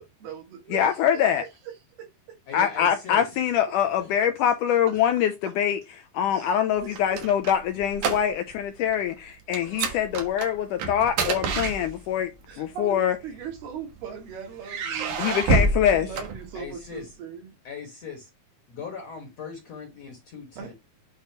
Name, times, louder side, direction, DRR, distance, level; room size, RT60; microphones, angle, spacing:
voice 1, 0.0-2.4 4.0-4.1 4.4-4.5 4.9-5.0 6.3-6.5 6.8-7.2 12.5-15.3 15.9-17.5 20.6-20.7, right 7 dB, 80° right, 4.1 m, -40 dB
voice 2, 0.7-1.4 2.5-5.8 6.1-12.3 12.6-13.2 15.2-16.1, left 9 dB, 80° left, 1.8 m, -24 dB
voice 3, 2.5-3.4 16.5-17.1 17.6-18.3 18.7-20.7, left 6 dB, 50° left, 2.6 m, -39 dB
sound 1, 6.7-8.6 8.9-9.1 9.5-12.3 13.2-14.0 14.6-16.9, right 4 dB, 60° right, 2.4 m, -28 dB
8.6 x 4.7 x 3.0 m
omnidirectional pair, 4.4 m